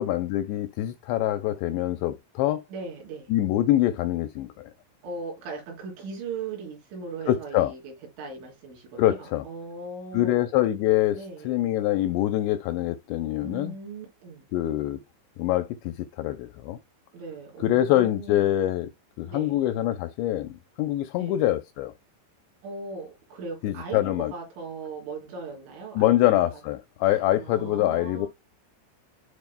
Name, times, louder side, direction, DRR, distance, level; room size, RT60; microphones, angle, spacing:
voice 1, 0.0-2.6 3.3-4.7 7.3-7.7 9.0-9.5 10.1-11.2 11.5-13.8 14.5-15.0 15.4-16.8 17.6-18.9 19.2-21.9 23.6-24.3 26.0-28.3, left 14 dB, 85° left, 2.5 m, -25 dB
voice 2, 2.7-3.3 5.0-10.5 11.1-11.6 13.4-14.5 17.1-18.5 19.3-19.6 21.2-21.4 22.6-26.2 26.5-26.6 27.0-28.3, right 4 dB, 80° right, 6.4 m, -38 dB
11.5 x 4.3 x 2.2 m
omnidirectional pair, 5.4 m